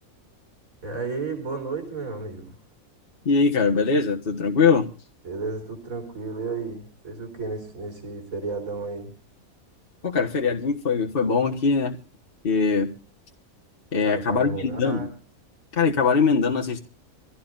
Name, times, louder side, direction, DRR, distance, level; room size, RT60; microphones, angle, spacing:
voice 1, 0.8-2.6 5.2-9.1 14.0-15.1, right 4 dB, 70° right, 4 dB, 4.7 m, -33 dB
voice 2, 3.2-4.9 10.0-12.0 12.4-12.9 13.9-15.1 15.7-16.8, left 5 dB, 40° left, 1 dB, 1.6 m, -22 dB
26.0 x 16.0 x 2.6 m, 0.38 s
omnidirectional pair, 1.5 m